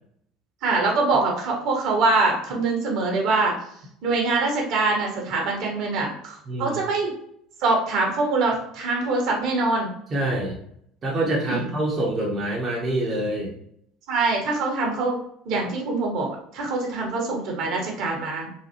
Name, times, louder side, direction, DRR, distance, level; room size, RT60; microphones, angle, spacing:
voice 1, 0.6-3.5 4.0-7.1 7.6-9.9 11.4-11.7 14.1-15.2 15.4-18.5, right 3 dB, 60° right, 0 dB, 1.2 m, -24 dB
voice 2, 6.5-6.8 10.1-10.6 11.0-13.5, right 1 dB, 35° right, -3 dB, 0.9 m, -26 dB
4.0 x 2.6 x 2.9 m, 0.70 s
hypercardioid pair, 70°, 0 cm